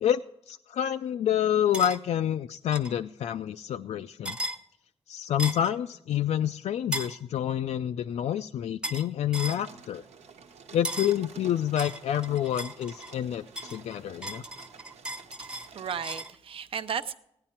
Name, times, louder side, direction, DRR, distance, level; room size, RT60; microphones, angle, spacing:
voice 1, 0.0-4.4 5.1-10.0 10.7-14.4, left 10 dB, 85° left, 8 dB, 0.4 m, -28 dB
sound 1, 1.7-2.0 2.7-2.9 4.2-4.6 5.4-5.7 6.9-7.2 8.8-9.1 9.3-9.6 10.8-11.2 11.8-13.2 13.6-16.3, right 1 dB, 10° right, 0.7 m, -36 dB
sound 2, 9.5-16.3, right 5 dB, 85° right, 1.2 m, -50 dB
voice 2, 15.4-17.1, right 7 dB, 55° right, 12 dB, 0.7 m, -35 dB
16.0 x 10.5 x 4.3 m, 0.77 s
wide cardioid pair, 180°, 11 cm